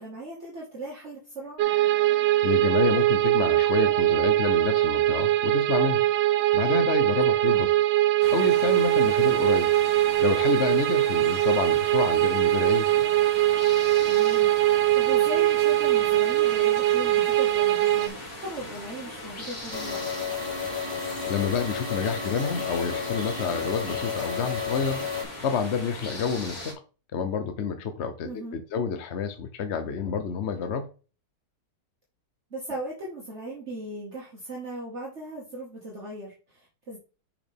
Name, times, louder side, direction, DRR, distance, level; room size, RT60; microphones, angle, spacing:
voice 1, 0.0-1.6 7.5-7.7 14.0-20.0 28.2-28.6 32.5-37.0, right 1 dB, 40° right, 1.9 m, -38 dB
sound 1, 1.6-18.1, right 15 dB, 80° right, 1.3 m, -22 dB
voice 2, 2.4-6.0 6.5-7.7 8.3-9.7 10.2-12.9 21.3-25.1 25.4-26.8 27.1-30.9, left 6 dB, 55° left, 0.8 m, -28 dB
sound 2, 8.2-26.7, left 1 dB, 85° left, 2.8 m, -40 dB
sound 3, 19.7-25.2, left 5 dB, 30° left, 4.7 m, -32 dB
6.3 x 5.9 x 3.5 m
omnidirectional pair, 1.9 m